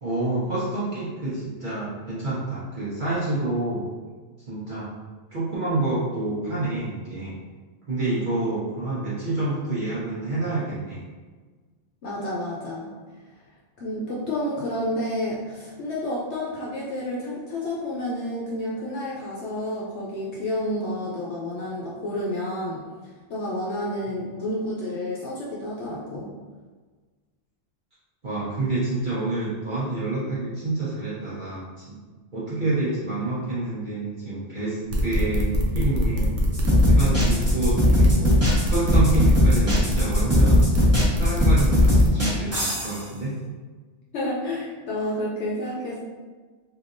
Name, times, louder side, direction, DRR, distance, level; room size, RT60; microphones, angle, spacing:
voice 1, 0.0-3.8 4.5-4.9 5.3-7.3 7.9-11.0 28.2-32.0 32.3-36.3 36.9-38.4 38.7-40.7 41.2-43.3, right 2 dB, 45° right, -10 dB, 1.0 m, -28 dB
voice 2, 12.0-12.9 13.8-22.8 23.3-26.3 44.1-46.0, left 1 dB, 65° left, -6 dB, 0.9 m, -30 dB
sound 1, 34.9-42.1, left 1 dB, 75° right, 1.0 m, -24 dB
sound 2, 36.5-43.0, left 1 dB, 15° right, 0.9 m, -19 dB
3.4 x 2.8 x 2.5 m, 1.4 s
omnidirectional pair, 1.3 m